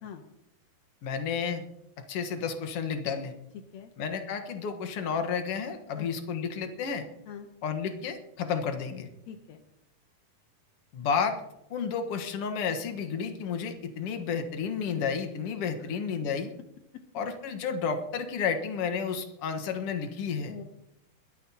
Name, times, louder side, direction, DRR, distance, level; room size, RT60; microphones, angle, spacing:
voice 1, 1.0-1.6 2.1-3.3 4.0-7.0 7.6-9.1 10.9-11.4 11.7-16.5 17.1-20.5, left 6 dB, 55° left, 6 dB, 1.7 m, -31 dB
voice 2, 9.3-9.6 15.8-15.9 20.4-20.6, left 8 dB, 80° left, 6 dB, 1.6 m, -43 dB
21.5 x 13.0 x 2.9 m, 0.84 s
omnidirectional pair, 4.3 m